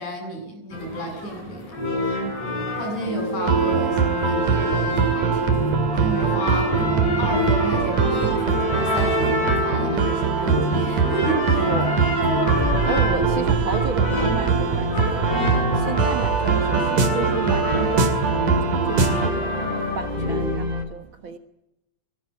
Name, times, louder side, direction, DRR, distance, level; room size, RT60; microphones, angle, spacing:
voice 1, 0.0-1.8 2.8-6.7 7.2-11.7, right 1 dB, 70° left, 3 dB, 9.6 m, -32 dB
sound 1, 0.7-20.6, left 1 dB, 55° left, 8.5 m, -27 dB
sound 2, 3.4-19.3, right 5 dB, 85° right, 4.0 m, -23 dB
sound 3, 4.7-20.8, equal, 15° right, 3.8 m, -33 dB
voice 2, 11.6-12.1 12.8-18.1 18.8-21.4, right 5 dB, 55° right, 8 dB, 1.6 m, -32 dB
26.5 x 20.0 x 8.0 m, 0.88 s
omnidirectional pair, 3.5 m